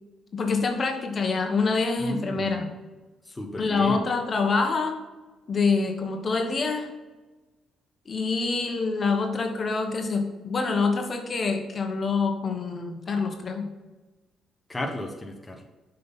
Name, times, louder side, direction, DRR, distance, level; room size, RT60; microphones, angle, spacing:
voice 1, 0.3-2.7 3.6-5.0 5.5-6.9 8.1-13.7, left 4 dB, 40° left, 4 dB, 1.2 m, -26 dB
voice 2, 2.0-2.6 3.3-4.1 14.7-15.6, left 1 dB, 15° left, 2 dB, 1.1 m, -34 dB
7.5 x 5.7 x 4.2 m, 1.2 s
cardioid pair, 90°, 0 cm